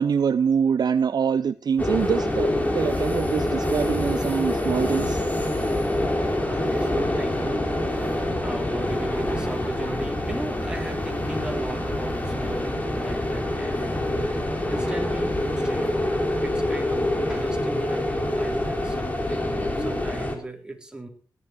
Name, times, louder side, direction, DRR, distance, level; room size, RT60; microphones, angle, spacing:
voice 1, 0.0-5.2, right 6 dB, 60° right, 0.6 m, -24 dB
sound 1, 1.8-20.4, left 1 dB, 20° left, 3.8 m, -26 dB
voice 2, 6.3-14.4 14.7-16.2 16.4-21.1, right 2 dB, 10° right, 3.8 m, -36 dB
17.5 x 11.0 x 4.5 m
cardioid pair, 70°, 8 cm